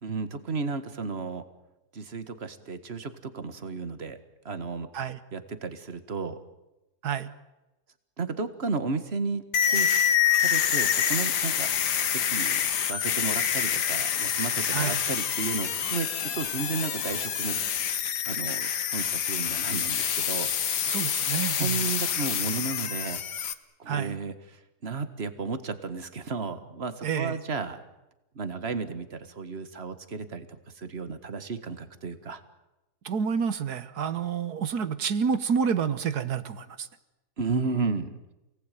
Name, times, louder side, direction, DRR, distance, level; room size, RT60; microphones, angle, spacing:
voice 1, 0.0-1.4 1.9-4.2 4.5-4.9 5.3-6.4 8.2-9.9 10.4-11.7 12.1-12.6 12.9-17.6 18.3-20.5 20.8-20.9 21.5-23.2 23.8-27.8 28.4-32.4 37.4-38.2, right 4 dB, 40° right, 11 dB, 1.9 m, -33 dB
sound 1, 9.5-23.5, left 9 dB, 85° left, 1.8 m, -27 dB
voice 2, 20.9-21.9 23.9-24.2 27.0-27.4 33.0-36.9, right 6 dB, 70° right, 14 dB, 1.8 m, -29 dB
28.5 x 19.0 x 9.3 m, 1.0 s
omnidirectional pair, 1.7 m